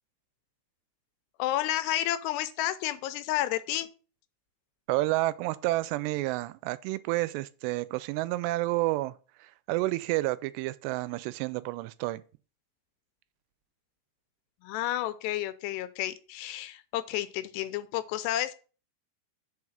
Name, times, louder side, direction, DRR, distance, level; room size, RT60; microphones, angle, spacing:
voice 1, 1.4-3.9 14.6-18.5, left 13 dB, 85° left, 2.7 m, -31 dB
voice 2, 4.9-12.2, right 18 dB, 90° right, 2.7 m, -30 dB
5.6 x 4.8 x 6.5 m
omnidirectional pair, 4.8 m